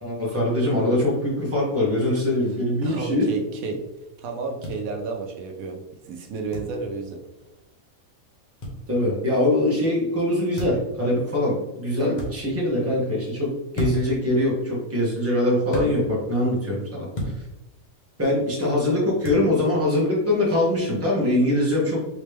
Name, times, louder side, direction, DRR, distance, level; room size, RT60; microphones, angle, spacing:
voice 1, 0.0-3.3 8.9-17.1 18.2-22.0, left 1 dB, 10° right, -5 dB, 1.2 m, -23 dB
voice 2, 2.8-3.8 4.2-7.2, right 4 dB, 80° right, 2 dB, 1.1 m, -32 dB
sound 1, 4.6-4.8 6.5-6.7 8.6-8.8 10.5-10.9 12.1-12.3 13.7-14.2 15.7-15.9 17.1-17.4 19.2-19.4, equal, 35° left, 1.0 m, -29 dB
4.9 x 3.1 x 3.4 m, 1.0 s
omnidirectional pair, 1.5 m